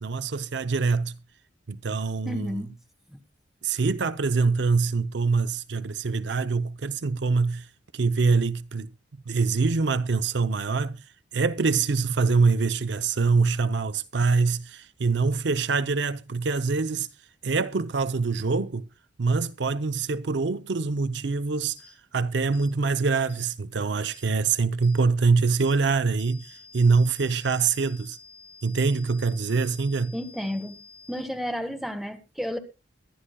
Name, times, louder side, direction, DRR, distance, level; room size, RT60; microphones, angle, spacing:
voice 1, 0.0-1.2 1.7-2.5 3.6-7.7 7.9-8.9 9.3-11.0 11.3-17.1 17.4-18.9 19.2-21.8 22.1-28.2 28.6-30.2, right 4 dB, 65° right, 0.6 m, -24 dB
voice 2, 2.2-2.7 3.1-3.2 30.1-30.8 31.1-32.6, equal, ahead, 1.5 m, -32 dB
sound 1, 21.8-21.9 22.5-22.7 23.3-23.5 24.1-24.2 24.8-25.0 25.6-25.7 26.2-31.2, left 5 dB, 15° left, 5.7 m, -50 dB
22.5 x 11.0 x 2.2 m
head